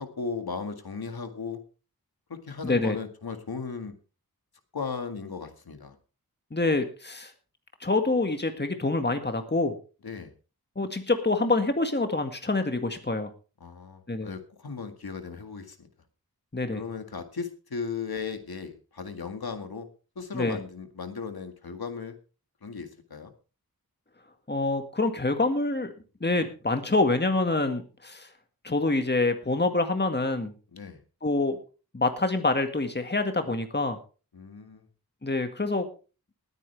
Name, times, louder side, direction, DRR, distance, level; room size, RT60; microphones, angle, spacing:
voice 1, 0.0-1.6 2.3-4.0 4.7-6.0 10.0-10.3 13.6-15.9 16.7-19.9 20.2-22.2 22.6-23.3 30.7-31.0 34.3-34.9, left 5 dB, 75° left, 7 dB, 2.0 m, -36 dB
voice 2, 2.6-3.0 6.5-7.3 7.8-9.7 10.8-13.3 14.1-14.3 16.5-16.8 20.3-20.6 24.5-25.9 26.2-28.3 28.6-30.5 31.2-31.6 31.9-34.0 35.2-35.9, left 2 dB, 25° left, 7 dB, 1.9 m, -26 dB
20.0 x 9.2 x 3.4 m, 0.34 s
wide cardioid pair, 55°, 37 cm